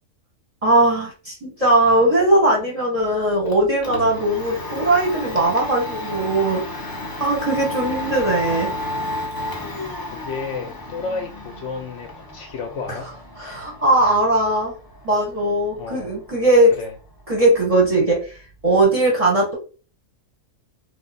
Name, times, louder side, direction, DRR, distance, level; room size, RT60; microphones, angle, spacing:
voice 1, 0.6-6.9 7.2-8.7 13.4-14.7 15.0-16.7 17.3-18.4 18.6-19.5, right 1 dB, 30° right, 0.8 m, -19 dB
Domestic sounds home sounds, 3.0-18.8, left 1 dB, 35° left, 0.3 m, -33 dB
voice 2, 10.0-13.1 15.8-16.1 16.7-16.9, left 4 dB, 65° left, 0.8 m, -32 dB
2.7 x 2.2 x 4.0 m
omnidirectional pair, 1.5 m